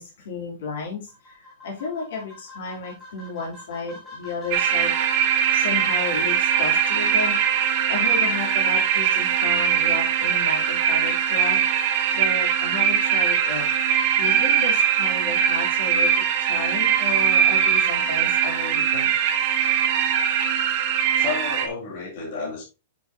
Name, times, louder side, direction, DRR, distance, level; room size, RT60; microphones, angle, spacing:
voice 1, 0.0-4.9 5.5-16.1 16.4-19.1, left 4 dB, 65° left, -1 dB, 3.1 m, -33 dB
sound 1, 1.1-12.1, left 3 dB, 10° left, 3.3 m, -43 dB
sound 2, 4.5-21.7, right 8 dB, 35° right, 1.0 m, -21 dB
voice 2, 21.1-22.6, left 4 dB, 40° left, -3 dB, 3.1 m, -31 dB
9.2 x 5.7 x 2.8 m, 0.28 s
supercardioid pair, 180°, 0 cm